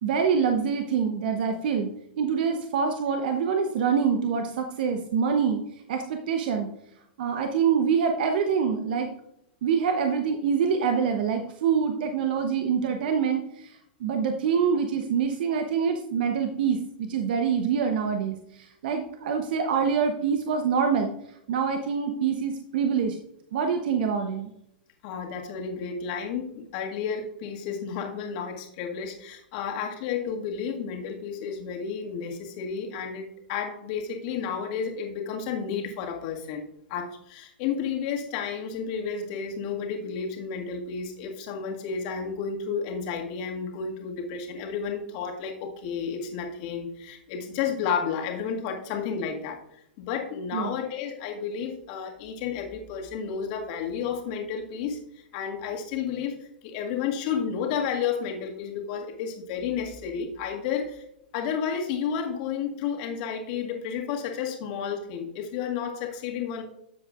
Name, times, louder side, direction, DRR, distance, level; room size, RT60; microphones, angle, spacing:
voice 1, 0.0-1.9 2.2-5.6 5.9-6.7 7.2-9.1 9.6-21.1 21.5-23.2 23.5-24.5 50.5-50.7, right 6 dB, 60° right, 5 dB, 0.9 m, -25 dB
voice 2, 25.0-49.6 50.0-55.0 55.3-61.0 61.3-66.6, left 7 dB, 50° left, 1 dB, 1.9 m, -31 dB
13.0 x 7.7 x 2.5 m, 0.77 s
hypercardioid pair, 110°, 6 cm